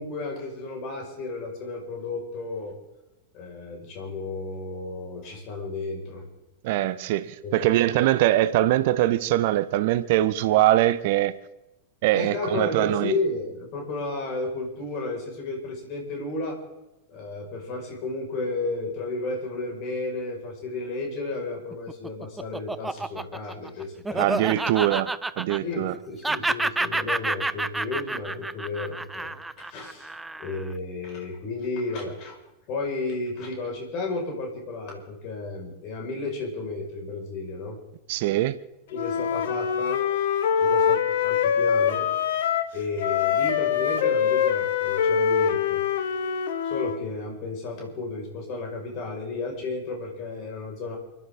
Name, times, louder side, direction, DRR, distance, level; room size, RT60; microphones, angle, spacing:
voice 1, 0.0-2.7 3.3-6.3 7.4-7.7 12.1-16.6 17.1-24.2 25.6-30.1 30.4-32.4 32.7-37.8 38.9-40.0 40.6-42.1 42.7-45.8 46.6-51.0, left 3 dB, 40° left, 5.4 m, -33 dB
voice 2, 6.6-11.4 12.0-13.1 24.2-25.1 25.4-25.9 38.1-38.6, right 14 dB, 50° right, 0.7 m, -22 dB
Laughter, 21.7-26.0 26.2-30.7, right 2 dB, 5° right, 0.4 m, -29 dB
Wind instrument woodwind instrument, 38.9-42.7 43.0-47.0, left 8 dB, 55° left, 1.2 m, -24 dB
29.0 x 11.5 x 3.7 m
figure-of-eight pair, 90°, 0 cm